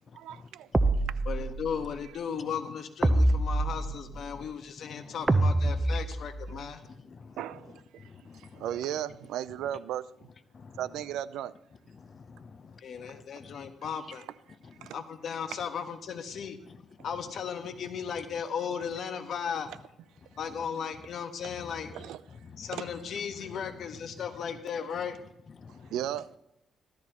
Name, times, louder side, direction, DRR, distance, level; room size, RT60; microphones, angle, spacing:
voice 1, 0.1-0.7 1.1-1.2 7.4-10.3 10.8-11.5 13.5-13.6 14.8-15.0 15.5-15.6 21.9-22.2 22.7-22.9 25.9-26.3, right 11 dB, 85° right, 0.5 m, -36 dB
sound 1, 0.7-1.8 3.0-4.3 5.3-6.5, right 2 dB, 20° right, 0.8 m, -26 dB
voice 2, 1.3-6.8 12.8-14.2 14.9-16.6 17.0-19.7 20.4-21.9 22.6-25.2, left 7 dB, 65° left, 1.3 m, -36 dB
voice 3, 4.1-4.5 4.9-5.5 5.8-6.0 6.5-6.6 6.9-8.7 10.5-10.9 11.9-13.7 14.6-14.9 17.0-17.1 20.2-20.3 21.5-21.9 22.3-22.7 23.3-23.4 25.6-25.9, left 5 dB, 45° left, 0.6 m, -50 dB
15.5 x 13.0 x 3.0 m
cardioid pair, 90°, 0 cm